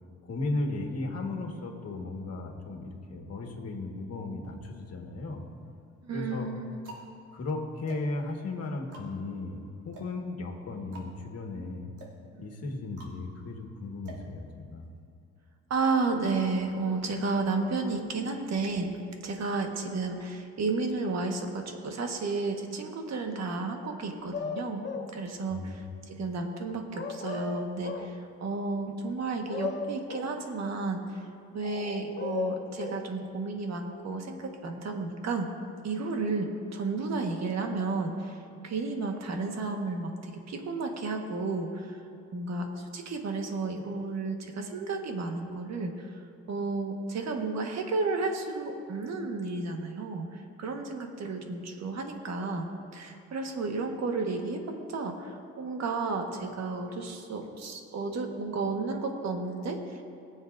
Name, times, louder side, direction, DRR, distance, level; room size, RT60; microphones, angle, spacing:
voice 1, 0.2-5.4 6.1-6.5 7.3-11.9 12.4-14.9 25.5-25.7, left 2 dB, 55° left, 2 dB, 1.7 m, -35 dB
sound 1, 4.9-5.6 6.3-15.0, right 2 dB, 80° right, 2.8 m, -51 dB
voice 2, 6.0-6.8 12.3-12.7 15.7-18.9 19.2-24.9 25.1-31.3 31.5-35.5 35.8-42.0 42.3-46.2 46.5-52.6 52.9-60.0, right 3 dB, 60° right, 3 dB, 1.5 m, -32 dB
sound 2, 24.3-25.1 26.9-28.1 29.2-30.4 31.6-33.0, left 5 dB, 35° left, 1.1 m, -35 dB
21.5 x 7.3 x 2.6 m, 2.6 s
cardioid pair, 90°, 30 cm